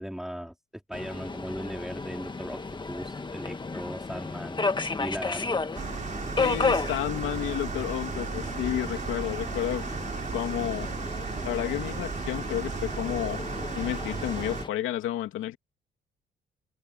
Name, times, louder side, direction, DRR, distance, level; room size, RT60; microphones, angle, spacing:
voice 1, 0.0-4.6 5.0-5.5, equal, ahead, 3.6 m, -38 dB
Subway metro underground, 0.9-14.7, left 4 dB, 25° left, 1.8 m, -33 dB
sound 1, 5.7-14.6, right 5 dB, 40° right, 4.6 m, -35 dB
voice 2, 6.4-9.8 10.3-10.9 11.4-13.4 13.8-15.6, left 12 dB, 85° left, 2.7 m, -31 dB
cardioid pair, 90°, 20 cm